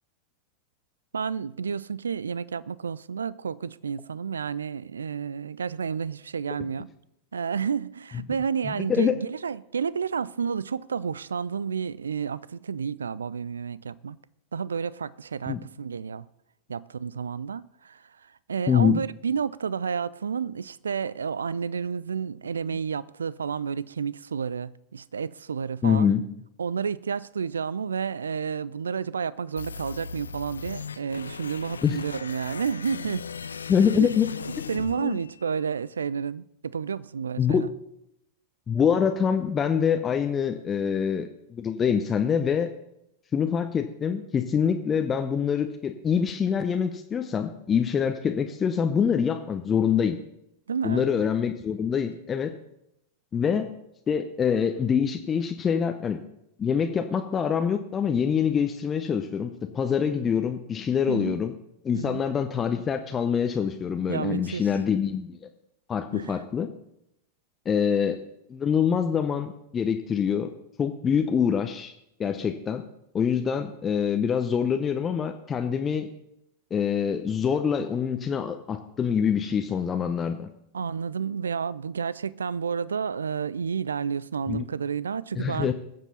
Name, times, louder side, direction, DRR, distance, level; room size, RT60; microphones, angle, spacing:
voice 1, 1.1-6.9 7.3-14.2 14.5-16.3 16.7-18.0 18.5-26.1 26.6-33.2 34.0-34.1 34.7-37.7 50.7-51.1 61.1-61.4 61.9-62.2 64.1-64.6 66.1-66.4 80.7-85.7, right 6 dB, 70° right, 0.4 m, -30 dB
voice 2, 8.6-9.2 15.5-15.6 18.7-19.0 25.8-26.2 31.8-32.0 33.7-34.3 35.0-35.2 37.4-37.6 38.7-42.7 43.3-50.2 50.8-52.5 53.3-53.7 54.1-56.2 56.6-61.5 61.8-65.4 65.9-66.7 67.7-68.2 68.5-70.5 70.8-71.9 72.2-72.8 73.1-76.1 76.7-80.5 84.5-84.6 85.4-85.7, left 7 dB, 20° left, 0.8 m, -25 dB
sound 1, 29.6-35.6, left 6 dB, 75° left, 0.4 m, -38 dB
21.0 x 7.6 x 4.1 m
figure-of-eight pair, 90°, 0 cm